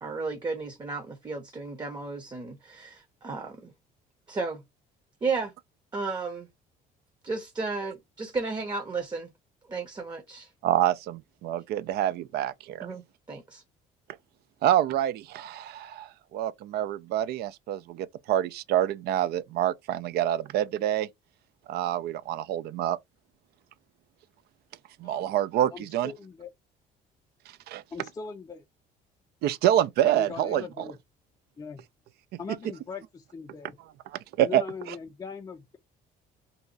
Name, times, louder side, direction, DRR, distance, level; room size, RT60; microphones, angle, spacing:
voice 1, 0.0-3.7 4.3-4.6 5.2-5.5 5.9-6.5 7.2-9.3 9.7-10.5 12.8-13.6, right 4 dB, 25° right, 0.7 m, -33 dB
voice 2, 10.6-12.9 14.6-21.1 21.7-23.0 25.0-26.1 27.7-27.8 29.4-30.9 34.4-34.6, right 12 dB, 70° right, 0.4 m, -27 dB
voice 3, 25.7-26.5 27.9-28.6 30.0-31.0 31.6-31.8 32.4-33.8 34.4-35.8, left 5 dB, 20° left, 0.4 m, -40 dB
2.7 x 2.3 x 3.9 m
cardioid pair, 110°, 17 cm